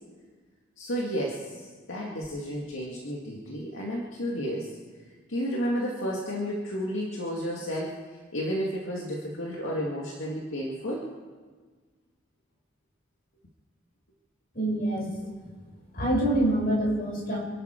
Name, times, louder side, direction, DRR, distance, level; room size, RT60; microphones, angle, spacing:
voice 1, 0.8-4.7 5.3-7.9 8.3-11.0, equal, 75° left, -3 dB, 2.1 m, -32 dB
voice 2, 14.5-15.3 15.9-17.4, right 1 dB, 45° left, -2 dB, 5.8 m, -26 dB
27.5 x 11.5 x 4.5 m, 1.5 s
head